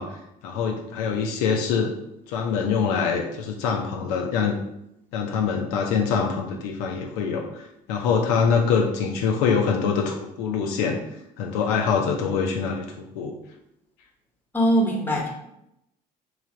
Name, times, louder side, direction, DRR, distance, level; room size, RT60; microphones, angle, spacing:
voice 1, 0.0-1.9 2.3-4.6 5.1-11.0 11.4-13.3, left 6 dB, 65° left, 1 dB, 0.5 m, -24 dB
voice 2, 14.5-15.3, right 1 dB, 10° left, -1 dB, 1.0 m, -21 dB
3.2 x 2.3 x 3.8 m, 0.82 s
figure-of-eight pair, 55°, 21 cm